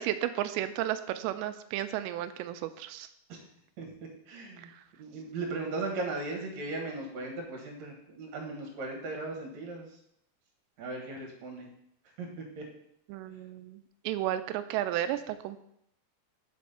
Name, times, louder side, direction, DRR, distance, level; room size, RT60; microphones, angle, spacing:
voice 1, 0.0-3.1 13.1-13.8 14.1-15.6, right 12 dB, 90° right, 11 dB, 2.7 m, -33 dB
voice 2, 4.3-4.7 5.0-9.9 10.8-11.7 12.2-12.3 12.6-12.7, right 3 dB, 55° right, 0 dB, 2.1 m, -37 dB
5.7 x 5.3 x 5.5 m, 0.74 s
omnidirectional pair, 4.9 m